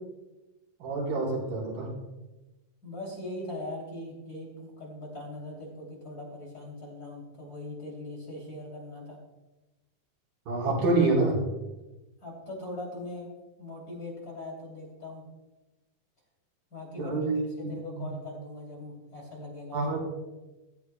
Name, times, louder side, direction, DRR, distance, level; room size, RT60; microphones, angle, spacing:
voice 1, 0.8-1.9 10.5-11.4 17.0-17.4 18.0-18.1 19.7-20.0, right 3 dB, 85° right, -4 dB, 5.5 m, -26 dB
voice 2, 2.8-9.2 12.2-15.2 16.7-17.2 17.5-19.8, left 1 dB, 25° left, -3 dB, 3.0 m, -40 dB
17.0 x 14.0 x 2.2 m, 1.0 s
omnidirectional pair, 4.1 m